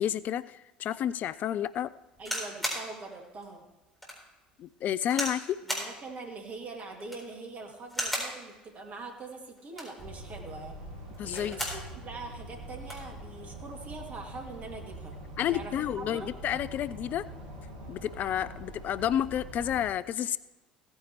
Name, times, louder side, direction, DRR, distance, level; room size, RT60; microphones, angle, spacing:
voice 1, 0.0-1.9 4.6-5.6 11.2-11.7 15.4-17.2 17.9-20.4, left 10 dB, 40° left, 16 dB, 0.3 m, -30 dB
sound 1, 2.2-2.9 3.4-3.5 4.0-4.2 5.1-5.4 5.7-5.9 6.9-7.3 7.9-8.4 9.6-10.0 11.1-11.8 12.2-12.3 12.6-13.1 13.9-14.2, equal, 5° left, 4.0 m, -34 dB
voice 2, 2.2-3.7 5.6-10.8 11.2-15.2 15.5-16.3, right 3 dB, 35° right, 2 dB, 2.4 m, -43 dB
sound 2, 10.0-19.8, right 1 dB, 60° right, 2.3 m, -44 dB
16.5 x 9.7 x 3.1 m, 1.1 s
figure-of-eight pair, 65°, 4 cm